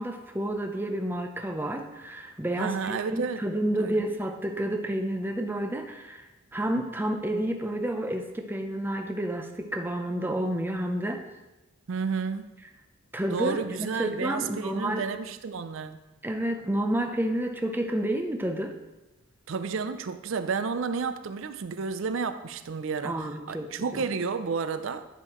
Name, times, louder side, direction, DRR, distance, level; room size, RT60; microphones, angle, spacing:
voice 1, 0.0-6.3 6.5-11.2 13.1-15.0 16.2-18.7 23.0-24.0, right 1 dB, 10° right, 0.5 m, -30 dB
voice 2, 2.6-3.4 3.8-4.0 11.9-12.5 13.3-16.0 19.5-25.0, right 5 dB, 60° right, 0.4 m, -31 dB
10.5 x 5.6 x 3.0 m
head